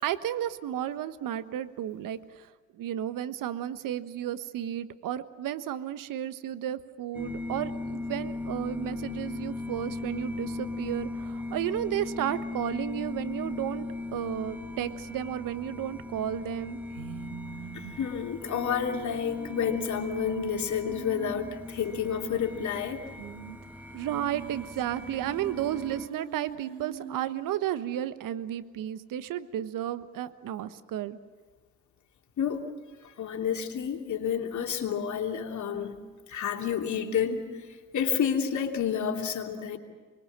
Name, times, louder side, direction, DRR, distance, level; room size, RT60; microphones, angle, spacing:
voice 1, 0.0-2.5 2.8-16.8 23.9-31.2, right 11 dB, 55° right, 12 dB, 1.3 m, -33 dB
sound 1, 7.1-26.1, left 2 dB, 5° right, 1.7 m, -38 dB
sound 2, 16.9-21.8 22.1-22.2 22.4-22.5 23.1-23.6 24.0-27.6, right 10 dB, 85° right, 1.2 m, -43 dB
voice 2, 17.7-23.0 32.4-32.6 33.0-35.9 36.3-37.5 37.9-39.8, left 8 dB, 45° left, 2 dB, 3.1 m, -30 dB
25.0 x 21.5 x 7.5 m, 1.5 s
hypercardioid pair, 65°, 39 cm